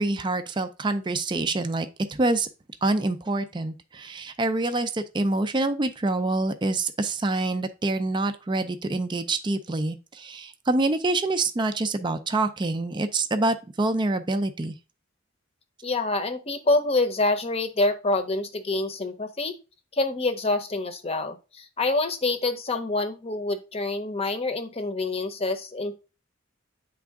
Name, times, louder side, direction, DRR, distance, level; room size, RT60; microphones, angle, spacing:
voice 1, 0.0-2.5 2.8-14.7, right 2 dB, 25° right, 0.4 m, -26 dB
voice 2, 15.8-19.6 19.9-26.0, left 2 dB, 30° left, 0.8 m, -26 dB
8.5 x 3.5 x 3.5 m
head